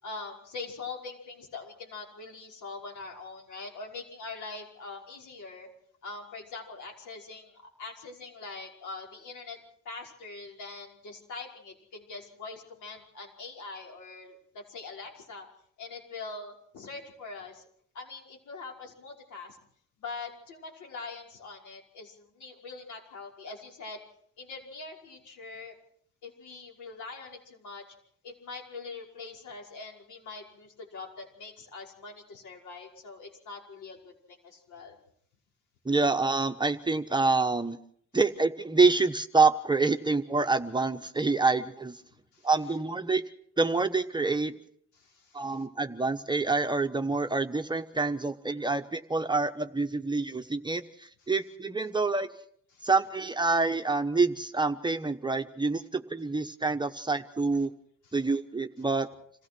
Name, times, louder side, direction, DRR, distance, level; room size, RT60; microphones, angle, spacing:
voice 1, 0.0-5.7 6.0-9.6 9.8-15.5 15.8-17.6 17.9-19.6 20.0-24.0 24.4-25.7 26.2-27.8 28.2-34.0 34.3-35.0 42.3-42.5 44.9-45.5 52.7-52.9 58.0-58.2, left 3 dB, 75° left, 1 dB, 5.5 m, -43 dB
voice 2, 35.8-37.8 38.1-42.0 42.4-43.2 43.6-44.5 45.3-52.3 52.8-57.7 58.1-59.1, right 3 dB, 15° right, 7 dB, 1.1 m, -27 dB
27.5 x 16.0 x 6.2 m, 0.63 s
cardioid pair, 90°, 30 cm